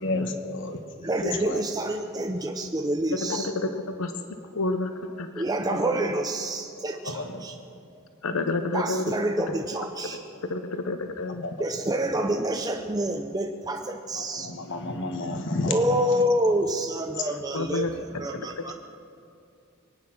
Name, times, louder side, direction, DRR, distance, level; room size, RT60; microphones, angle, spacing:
voice 1, 0.0-0.8 1.4-1.6 7.0-7.4 11.2-11.5 14.1-15.8, left 2 dB, 60° left, 6 dB, 1.3 m, -31 dB
voice 2, 1.0-3.5 5.3-7.6 8.7-10.2 10.5-10.6 11.6-14.5 15.7-18.7, right 1 dB, 20° right, 3 dB, 0.6 m, -27 dB
voice 3, 3.3-4.1 4.5-4.9 5.2-5.3 8.2-9.1 9.5-9.6 10.5-11.4 17.5-17.9, left 2 dB, 85° left, 8 dB, 0.8 m, -29 dB
23.0 x 9.8 x 6.1 m, 2.5 s
head